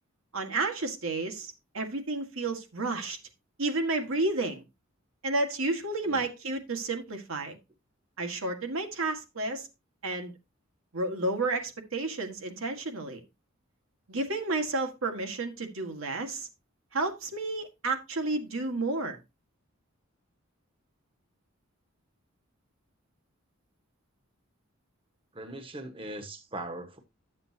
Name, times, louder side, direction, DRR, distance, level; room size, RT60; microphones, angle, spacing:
voice 1, 0.3-3.2 3.6-4.6 5.2-7.6 8.2-9.7 10.0-10.3 10.9-13.2 14.1-16.5 16.9-19.2, right 2 dB, 75° right, 1.8 m, -31 dB
voice 2, 25.3-27.0, right 1 dB, 25° right, 1.2 m, -40 dB
12.0 x 7.4 x 2.8 m
head